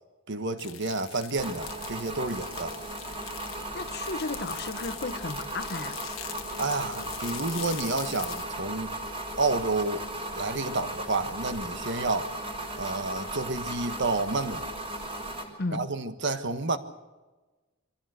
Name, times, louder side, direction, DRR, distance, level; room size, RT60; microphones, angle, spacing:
voice 1, 0.3-2.7 6.5-8.9 9.4-10.0 10.3-12.3 12.8-14.7 15.7-16.8, right 3 dB, 55° right, 1.5 m, -30 dB
sound 1, 0.6-8.4, left 12 dB, 85° left, 1.3 m, -43 dB
sound 2, 1.4-15.4, right 1 dB, 25° right, 4.3 m, -36 dB
voice 2, 3.7-6.0 15.6-15.9, left 3 dB, 50° left, 1.1 m, -34 dB
25.0 x 16.0 x 8.0 m
head